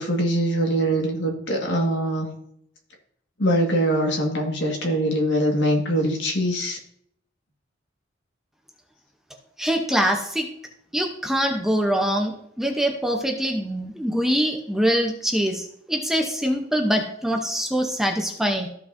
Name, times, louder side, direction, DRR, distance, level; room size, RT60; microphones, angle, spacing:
voice 1, 0.0-2.3 3.4-6.8, equal, 65° left, 1 dB, 1.7 m, -23 dB
voice 2, 9.6-10.5 10.9-12.3 12.6-15.6 15.9-18.7, equal, ahead, 2 dB, 0.7 m, -23 dB
14.0 x 5.3 x 2.6 m, 0.72 s
head